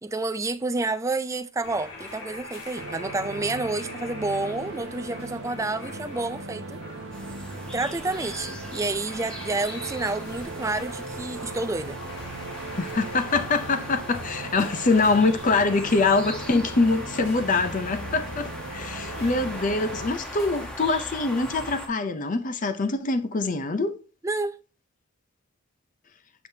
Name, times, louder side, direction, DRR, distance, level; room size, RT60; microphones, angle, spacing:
voice 1, 0.0-6.8 7.7-12.0 24.2-24.6, right 2 dB, 15° right, 0.3 m, -29 dB
sound 1, 1.6-20.7, left 2 dB, 70° left, 3.9 m, -43 dB
sound 2, 2.8-20.1, right 3 dB, 55° right, 0.6 m, -39 dB
sound 3, 7.1-21.9, equal, 5° left, 1.0 m, -40 dB
voice 2, 12.8-24.0, left 3 dB, 35° left, 0.5 m, -24 dB
7.9 x 5.1 x 2.8 m
head